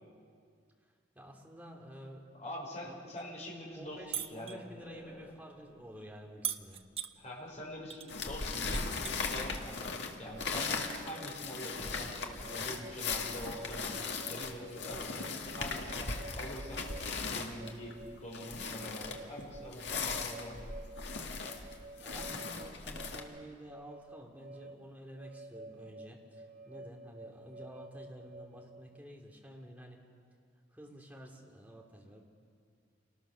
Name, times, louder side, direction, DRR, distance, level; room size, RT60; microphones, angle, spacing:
voice 1, 0.8-2.3 2.8-3.1 3.7-6.8 22.0-30.0 30.7-32.2, equal, 10° right, -1 dB, 3.0 m, -51 dB
voice 2, 2.4-4.0 4.3-5.3 7.2-14.0 14.3-16.9 17.3-18.0 18.2-20.7, equal, 40° left, -3 dB, 5.5 m, -45 dB
sound 1, 4.1-4.6 6.4-7.1 7.9-8.1 8.4-9.4 10.6-10.7, right 10 dB, 30° right, 0.7 m, -38 dB
sound 2, 8.1-23.2, left 4 dB, 65° left, 2.0 m, -38 dB
sound 3, 10.2-29.0, right 2 dB, 50° right, 1.2 m, -52 dB
28.5 x 19.5 x 6.5 m, 2.2 s
head